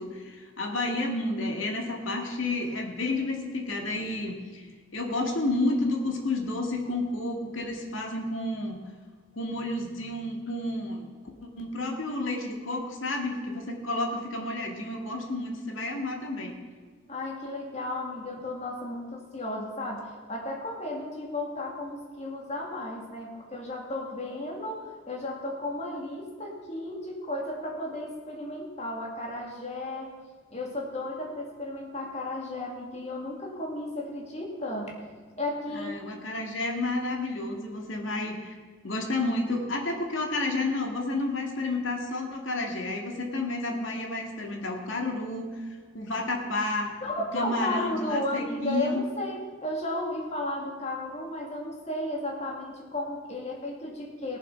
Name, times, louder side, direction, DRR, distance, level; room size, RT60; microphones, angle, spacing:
voice 1, 0.0-4.7 4.9-8.8 9.4-11.0 11.4-16.6 35.7-38.5 38.8-46.9 47.3-49.0, left 2 dB, 70° left, 1 dB, 2.0 m, -31 dB
voice 2, 17.1-30.2 30.5-35.1 35.4-36.0 47.0-54.4, left 1 dB, 30° left, -1 dB, 2.2 m, -34 dB
18.0 x 7.3 x 5.6 m, 1.5 s
head